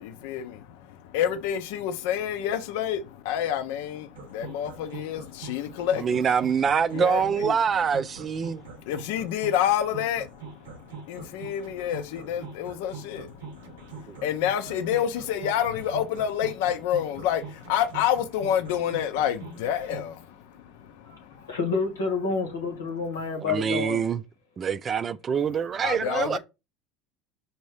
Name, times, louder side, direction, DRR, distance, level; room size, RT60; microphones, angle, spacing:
voice 1, 0.0-6.2 6.9-7.6 8.5-20.4 20.8-21.3 25.8-26.4, left 10 dB, 70° left, 0.5 m, -29 dB
sound 1, 4.2-20.1, right 5 dB, 85° right, 0.8 m, -43 dB
voice 2, 6.0-8.6 14.1-14.2 23.4-24.2 24.6-26.4, right 7 dB, 35° right, 0.3 m, -25 dB
voice 3, 21.0-24.0, left 4 dB, 90° left, 1.2 m, -29 dB
4.3 x 2.7 x 3.2 m
hypercardioid pair, 80°, 0 cm